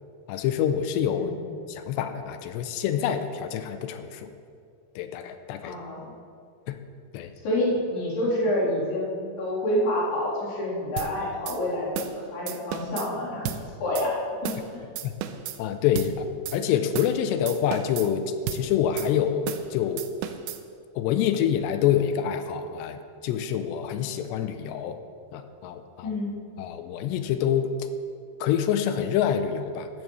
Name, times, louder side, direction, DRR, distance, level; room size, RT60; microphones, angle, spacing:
voice 1, 0.3-1.3 1.7-4.3 5.0-5.7 6.7-6.8 7.1-7.3 15.0-15.1 15.6-16.3 16.5-18.2 18.5-20.0 21.0-25.0 25.3-26.2 26.6-27.7 28.4-29.9, left 9 dB, 85° left, 9 dB, 2.8 m, -26 dB
voice 2, 1.1-1.5 5.6-6.0 7.4-13.5 13.8-14.2 14.4-14.8 26.0-26.3, left 1 dB, 65° left, -9 dB, 5.4 m, -28 dB
sound 1, 11.0-11.1 11.5-11.6 12.0-12.2 12.5-13.1 13.5-13.6 14.0-14.1 14.4-14.7 15.0-15.6 16.0-16.1 16.5-16.6 16.9-17.2 17.5-18.1 18.5-18.6 19.0-19.1 19.5-19.7 20.0-20.6, right 11 dB, 90° right, 2.2 m, -33 dB
15.5 x 12.5 x 3.1 m, 2.3 s
omnidirectional pair, 5.0 m